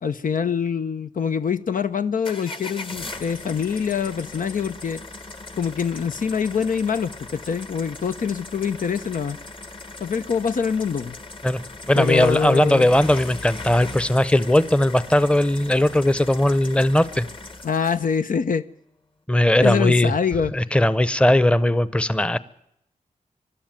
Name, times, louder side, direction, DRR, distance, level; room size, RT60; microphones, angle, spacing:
voice 1, 0.0-5.0 5.6-9.4 10.0-11.2 11.9-12.9 17.6-18.6 19.6-20.5, left 6 dB, 85° left, 0.9 m, -24 dB
sound 1, 2.2-18.2, left 2 dB, 40° left, 1.4 m, -38 dB
voice 2, 11.9-17.3 19.3-20.1 20.5-22.4, left 1 dB, 10° left, 0.8 m, -18 dB
24.0 x 12.5 x 9.1 m
wide cardioid pair, 110°, 14 cm